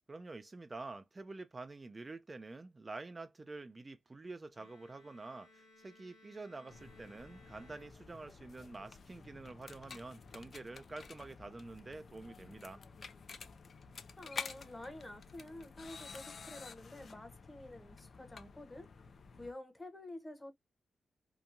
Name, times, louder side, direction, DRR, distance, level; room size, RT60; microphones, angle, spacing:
voice 1, 0.1-12.8, right 3 dB, 30° right, 0.4 m, -48 dB
Bowed string instrument, 4.5-8.6, left 2 dB, 80° left, 1.2 m, -63 dB
sound 1, 6.7-19.5, left 5 dB, 60° left, 0.4 m, -51 dB
voice 2, 14.2-18.9 19.3-20.5, left 1 dB, 20° left, 0.9 m, -49 dB
2.9 x 2.2 x 2.5 m
cardioid pair, 70°, 0 cm